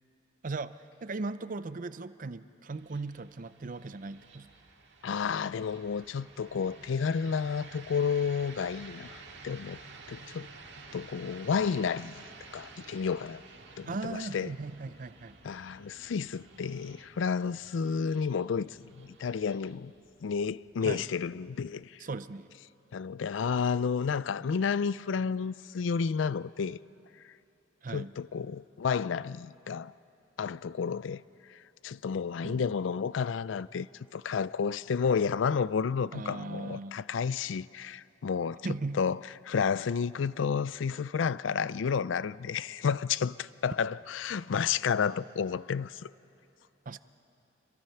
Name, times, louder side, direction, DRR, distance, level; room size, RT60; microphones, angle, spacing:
voice 1, 0.4-4.5 13.9-15.4 20.8-21.0 22.0-22.5 27.8-28.1 32.4-32.6 36.1-37.0 38.6-39.0 46.9-47.0, right 3 dB, 45° right, 0.5 m, -38 dB
sound 1, 2.7-21.7, right 3 dB, 65° right, 2.0 m, -52 dB
voice 2, 5.0-9.8 10.1-10.5 10.9-12.2 12.5-13.4 13.8-14.5 15.4-19.9 20.2-22.0 22.9-26.8 27.9-29.9 30.4-31.2 31.5-31.6 31.8-33.9 34.1-38.6 39.0-39.2 39.4-46.1, left 6 dB, 80° left, 0.4 m, -31 dB
27.0 x 22.5 x 5.8 m
head